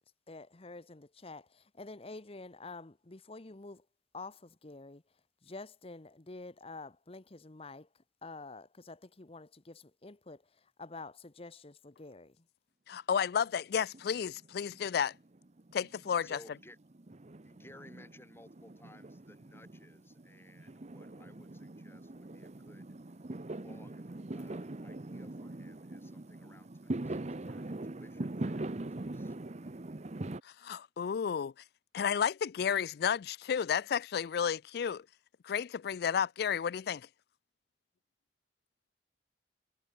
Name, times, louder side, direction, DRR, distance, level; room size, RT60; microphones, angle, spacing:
voice 1, 0.3-3.9 4.1-5.0 5.4-12.5, left 3 dB, 35° left, 1.0 m, -48 dB
voice 2, 12.9-15.1 15.7-16.4 30.4-31.5 31.9-35.0 35.4-37.1, left 7 dB, 60° left, 0.4 m, -32 dB
Fireworks, 13.9-14.9 15.1-30.4, right 2 dB, 40° right, 0.8 m, -42 dB
voice 3, 16.2-16.8 17.4-23.2 23.5-29.4, left 1 dB, 15° left, 4.7 m, -59 dB
head